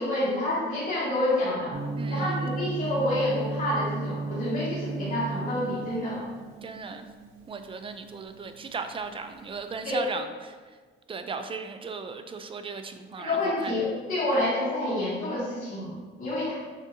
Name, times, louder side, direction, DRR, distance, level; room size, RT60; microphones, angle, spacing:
voice 1, 0.0-1.8 2.1-6.2 9.8-10.0 13.2-16.5, left 1 dB, 50° left, -10 dB, 1.2 m, -28 dB
Gong, 1.7-9.8, right 3 dB, 80° right, 0.8 m, -35 dB
voice 2, 2.0-2.3 6.6-7.1 7.5-10.5 11.1-13.4 13.6-13.7 14.3-14.5, right 4 dB, 25° right, 8 dB, 0.4 m, -36 dB
6.2 x 2.6 x 2.6 m, 1.5 s
cardioid pair, 90°, 20 cm